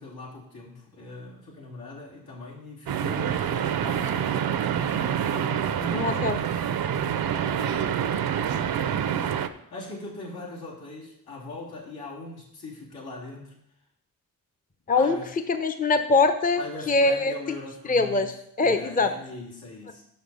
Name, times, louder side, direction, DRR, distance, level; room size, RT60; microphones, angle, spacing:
voice 1, 0.0-5.1 5.3-13.6 14.9-15.3 16.6-18.3 18.6-20.0, left 2 dB, 90° left, -4 dB, 3.1 m, -41 dB
sound 1, 2.9-9.5, right 9 dB, 75° right, 0.6 m, -27 dB
voice 2, 5.9-6.4 14.9-15.2 15.5-17.6 17.9-18.3 18.6-19.1, left 3 dB, 25° left, 8 dB, 0.6 m, -23 dB
6.5 x 5.9 x 6.9 m, 0.76 s
cardioid pair, 85°, 36 cm